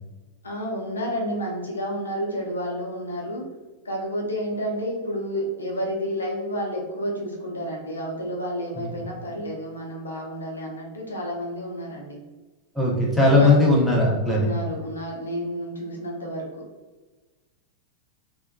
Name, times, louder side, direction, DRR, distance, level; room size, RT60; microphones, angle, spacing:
voice 1, 0.4-3.5 3.8-12.2 13.2-13.5 14.2-16.6, equal, 75° left, -1 dB, 0.5 m, -30 dB
voice 2, 12.7-14.5, left 2 dB, 5° left, -5 dB, 0.8 m, -19 dB
3.2 x 2.1 x 2.2 m, 1.2 s
figure-of-eight pair, 90°, 0 cm